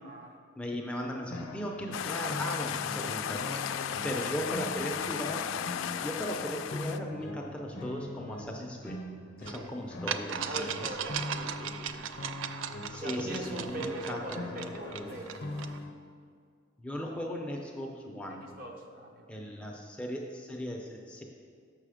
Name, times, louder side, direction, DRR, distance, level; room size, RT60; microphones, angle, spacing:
voice 1, 0.0-0.3 2.5-2.6 3.0-4.0 9.4-9.7 10.4-12.1 12.9-15.3 18.2-19.3, right 1 dB, 45° right, 1 dB, 0.8 m, -42 dB
voice 2, 0.6-3.5 4.0-5.5 6.0-9.0 9.4-10.9 12.8-14.4 14.9-15.1 16.8-18.5 19.3-21.2, equal, 5° left, 0 dB, 0.5 m, -37 dB
sound 1, 1.3-15.9, left 2 dB, 50° left, 0.6 m, -42 dB
sound 2, 1.9-7.0, left 8 dB, 90° left, 0.3 m, -35 dB
sound 3, 9.5-9.6 10.1-15.8, right 8 dB, 85° right, 0.4 m, -38 dB
6.8 x 5.7 x 5.0 m, 2.1 s
head